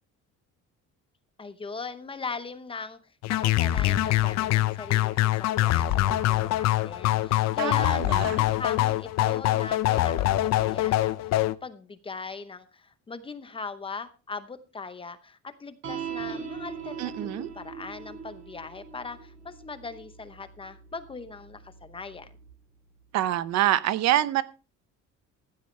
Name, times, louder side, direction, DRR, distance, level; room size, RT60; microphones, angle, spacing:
voice 1, 1.4-3.0 3.3-5.3 5.6-22.3, left 4 dB, 15° left, 11 dB, 0.8 m, -39 dB
sound 1, 3.2-11.5, left 15 dB, 60° left, 0.7 m, -24 dB
voice 2, 7.6-8.3 17.0-17.5 23.1-24.4, right 13 dB, 60° right, 15 dB, 0.8 m, -26 dB
sound 2, 15.8-22.5, right 6 dB, 45° right, 3.8 m, -41 dB
15.5 x 11.5 x 3.3 m, 0.32 s
cardioid pair, 170°, 30 cm